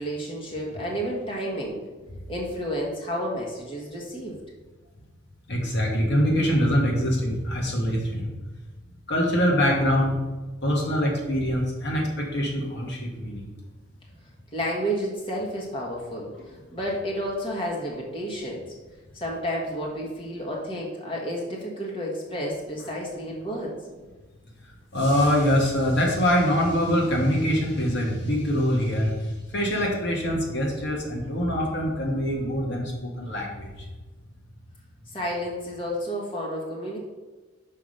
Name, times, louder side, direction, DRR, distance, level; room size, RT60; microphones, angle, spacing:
voice 1, 0.0-1.8 2.3-4.4 14.5-18.7 19.1-23.8 35.1-37.0, equal, 25° left, -3 dB, 1.5 m, -31 dB
voice 2, 5.5-8.3 9.1-10.2 10.6-13.5 24.9-29.1 29.5-33.7, equal, 55° left, -1 dB, 1.4 m, -24 dB
5.8 x 4.8 x 6.6 m, 1.3 s
head